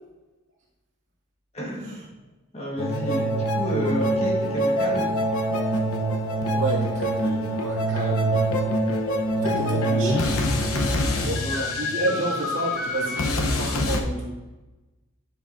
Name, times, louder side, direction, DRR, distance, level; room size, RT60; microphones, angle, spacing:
voice 1, 1.5-2.1 2.5-5.1 11.4-11.7 12.0-12.2, equal, 30° left, -3 dB, 1.5 m, -31 dB
sound 1, 2.8-14.0, equal, 90° left, 0.9 m, -24 dB
voice 2, 6.5-8.7 9.3-10.3 11.1-11.4 11.7-14.4, right 2 dB, 65° right, -3 dB, 2.1 m, -31 dB
10.5 x 6.0 x 2.6 m, 1.1 s
head